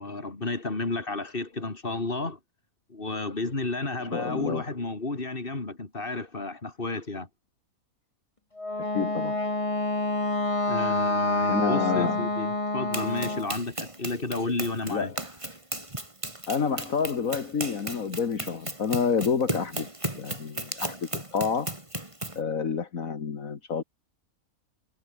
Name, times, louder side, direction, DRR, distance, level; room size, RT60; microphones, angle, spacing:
voice 1, 0.0-2.4 2.9-7.3 10.7-15.1, left 3 dB, 40° left, 3.4 m, -32 dB
voice 2, 4.1-4.6 8.9-9.4 11.5-12.2 14.9-15.1 16.5-19.9 20.1-21.7 22.4-23.8, left 6 dB, 70° left, 2.1 m, -28 dB
Wind instrument woodwind instrument, 8.6-13.5, left 2 dB, 20° left, 2.3 m, -28 dB
Run, 12.9-22.4, right 1 dB, 20° right, 3.6 m, -36 dB
omnidirectional pair, 1.5 m